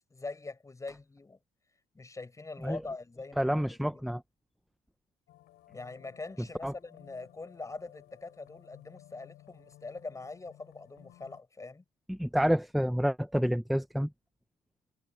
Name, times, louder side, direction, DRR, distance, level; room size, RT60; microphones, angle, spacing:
voice 1, 0.1-1.4 1.9-4.0 5.7-11.8, left 3 dB, 20° left, 7.6 m, -43 dB
voice 2, 3.4-4.2 6.6-6.7 12.1-14.1, equal, ahead, 0.7 m, -28 dB
sound 1, 5.3-11.4, left 15 dB, 80° left, 3.7 m, -57 dB
cardioid pair, 110°, 17 cm